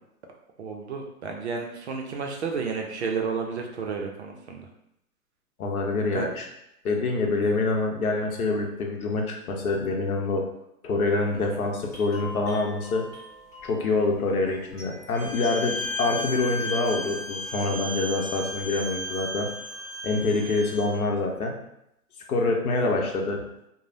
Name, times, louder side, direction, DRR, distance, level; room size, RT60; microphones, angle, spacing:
voice 1, 0.6-4.7 6.0-6.3 11.3-11.6, right 5 dB, 50° right, 2 dB, 0.5 m, -32 dB
voice 2, 5.6-6.4 6.8-10.5 10.8-13.1 13.6-19.5 20.0-21.6 22.3-23.4, left 3 dB, 70° left, 2 dB, 0.8 m, -26 dB
sound 1, 11.1-19.5, left 1 dB, 20° left, 1.4 m, -47 dB
Bowed string instrument, 15.1-20.9, left 1 dB, ahead, 0.6 m, -34 dB
3.1 x 2.0 x 2.6 m, 0.80 s
hypercardioid pair, 145°, 46 cm